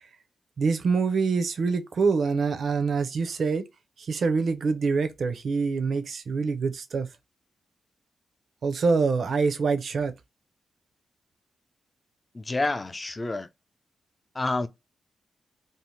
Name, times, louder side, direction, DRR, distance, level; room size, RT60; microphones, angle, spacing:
voice 1, 0.6-3.6 4.0-7.1 8.6-10.1, right 4 dB, 60° right, 0.5 m, -25 dB
voice 2, 12.3-13.5 14.3-14.7, left 2 dB, 25° left, 0.3 m, -28 dB
2.7 x 2.1 x 3.0 m
wide cardioid pair, 130°, 0 cm